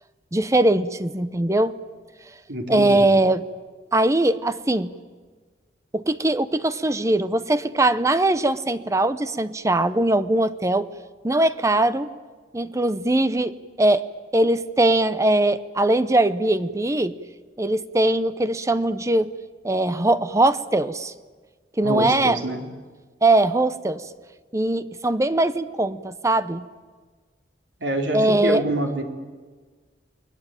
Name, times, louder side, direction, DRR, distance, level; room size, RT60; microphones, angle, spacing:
voice 1, 0.3-1.7 2.7-3.4 3.9-4.9 5.9-10.9 11.2-12.1 12.5-14.0 14.3-17.1 17.6-19.3 19.6-21.1 21.8-22.4 23.2-24.0 24.5-26.6 28.1-28.6, right 2 dB, 15° right, 13 dB, 0.7 m, -21 dB
voice 2, 2.5-3.0 21.8-22.6 27.8-29.0, right 1 dB, 85° right, 3 dB, 3.7 m, -26 dB
29.5 x 21.0 x 9.0 m, 1.4 s
head